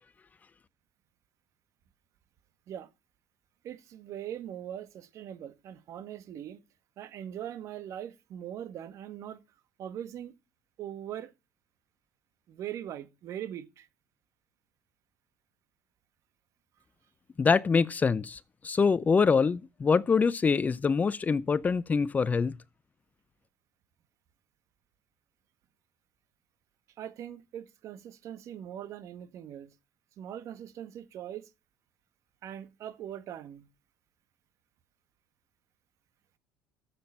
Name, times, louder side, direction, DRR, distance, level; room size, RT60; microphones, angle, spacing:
voice 1, 3.6-6.6 7.0-9.4 9.8-10.3 10.8-11.3 12.5-13.9 27.0-29.7 30.2-31.5 32.4-33.7, right 10 dB, 55° right, 1.6 m, -41 dB
voice 2, 17.4-22.6, left 5 dB, 25° left, 0.6 m, -25 dB
12.0 x 7.9 x 5.6 m
supercardioid pair, 90°, 6 cm